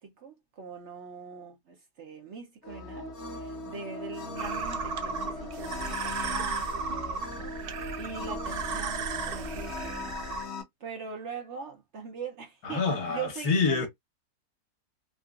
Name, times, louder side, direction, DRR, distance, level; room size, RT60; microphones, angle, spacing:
voice 1, 0.0-7.5 8.0-10.1 10.8-13.9, right 6 dB, 55° right, 0.9 m, -42 dB
sound 1, 2.6-10.6, left 2 dB, 50° left, 1.2 m, -39 dB
sound 2, 4.4-10.4, right 5 dB, 85° right, 0.5 m, -35 dB
voice 2, 12.6-13.9, left 4 dB, 70° left, 1.5 m, -26 dB
3.7 x 2.4 x 2.4 m
omnidirectional pair, 1.6 m